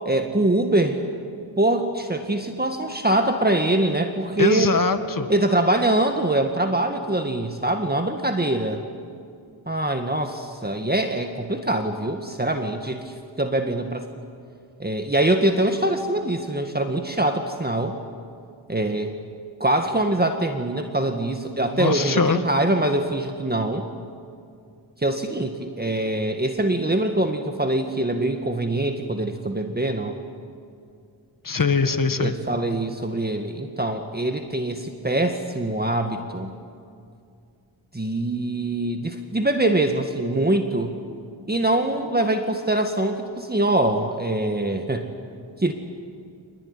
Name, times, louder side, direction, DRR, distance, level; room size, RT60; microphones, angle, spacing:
voice 1, 0.1-1.0 1.6-4.7 5.3-8.8 9.7-14.0 14.8-18.0 18.7-19.1 19.6-23.9 25.0-30.1 32.2-36.5 37.9-41.0 41.5-45.1 45.6-45.7, right 1 dB, 20° right, 5 dB, 1.8 m, -23 dB
voice 2, 4.4-5.3 21.7-22.4 31.4-32.3, left 4 dB, 45° left, 9 dB, 1.9 m, -22 dB
26.0 x 19.5 x 9.8 m, 2.4 s
cardioid pair, 60°, 47 cm